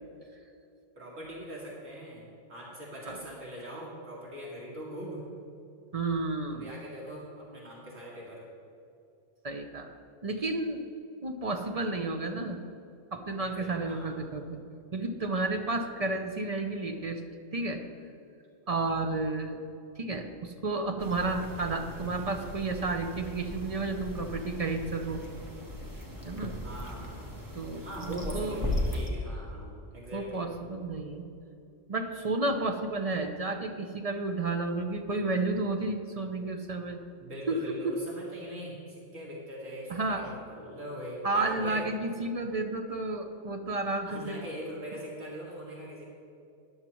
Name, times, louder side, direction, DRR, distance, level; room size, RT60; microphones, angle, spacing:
voice 1, 1.0-2.2 2.5-5.3 6.5-8.4 13.4-14.2 18.7-19.2 26.6-27.3 27.8-30.5 37.2-41.8 44.1-46.0, equal, 90° right, -5 dB, 2.7 m, -42 dB
voice 2, 5.9-6.7 9.4-9.9 10.2-10.8 11.2-12.6 13.1-14.6 14.9-17.2 17.5-17.8 18.7-19.6 20.0-25.2 26.2-26.5 27.5-28.6 30.1-31.3 31.9-37.0 37.5-37.6 37.8-37.9 39.9-40.4 41.2-44.4, right 3 dB, 40° right, 5 dB, 0.6 m, -31 dB
sound 1, 21.0-29.1, left 1 dB, 15° right, 1.1 m, -38 dB
13.0 x 11.0 x 3.1 m, 2.6 s
omnidirectional pair, 1.3 m